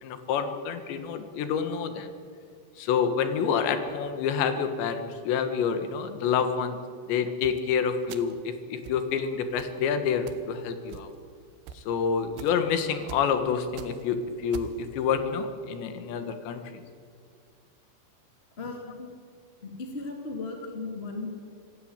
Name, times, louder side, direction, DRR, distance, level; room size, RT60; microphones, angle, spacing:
voice 1, 0.0-2.1 2.8-6.8 7.1-11.1 11.8-16.8, left 6 dB, 80° left, 8 dB, 3.8 m, -28 dB
sound 1, 7.4-7.6 8.1-8.4 8.8-9.0 9.6-9.8 10.3-10.5 10.9-11.3 11.7-11.8 12.4-12.6 13.1-13.3 13.6-14.1 14.5-14.9, right 8 dB, 80° right, 3.3 m, -43 dB
voice 2, 18.6-19.1 19.6-21.3, left 3 dB, 15° left, 2 dB, 2.3 m, -36 dB
26.0 x 15.5 x 8.9 m, 2.1 s
omnidirectional pair, 5.0 m